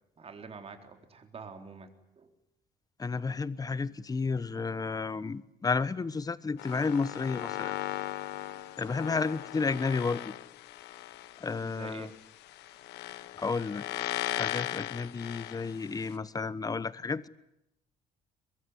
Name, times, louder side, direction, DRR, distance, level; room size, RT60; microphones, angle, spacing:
voice 1, 0.2-2.3 7.9-8.6 11.5-12.1, right 5 dB, 35° right, 6 dB, 3.9 m, -48 dB
voice 2, 3.0-7.8 8.8-10.3 11.4-12.1 13.4-13.8 14.3-17.3, left 4 dB, 20° left, 16 dB, 1.1 m, -32 dB
sound 1, 6.6-16.2, left 15 dB, 85° left, 1.3 m, -38 dB
23.0 x 22.0 x 9.8 m, 0.82 s
cardioid pair, 110°, 17 cm